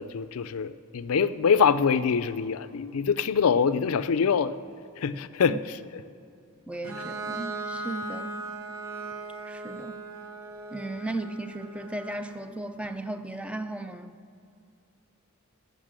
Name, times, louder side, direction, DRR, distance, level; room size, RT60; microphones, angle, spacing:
voice 1, 0.0-4.6 5.0-6.0, left 6 dB, 80° left, 0.4 m, -25 dB
voice 2, 6.7-8.4 9.5-9.9 10.7-14.1, right 2 dB, 5° right, 0.5 m, -36 dB
Bowed string instrument, 6.8-12.4, right 2 dB, 85° right, 1.1 m, -38 dB
15.0 x 6.6 x 7.5 m
head